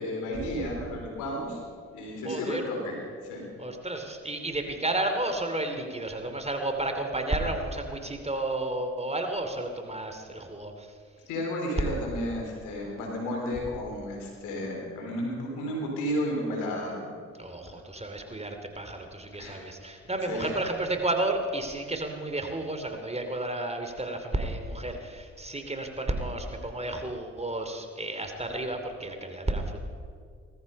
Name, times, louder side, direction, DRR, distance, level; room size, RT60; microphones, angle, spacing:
voice 1, 0.0-1.6 1.9-3.5 11.3-17.1 19.3-19.7 20.3-20.5, equal, 90° left, 0 dB, 3.7 m, -32 dB
voice 2, 2.2-2.6 3.6-10.9 17.4-29.8, right 2 dB, 20° right, 5 dB, 2.8 m, -32 dB
18.5 x 14.0 x 5.4 m, 2.2 s
supercardioid pair, 50°, 30 cm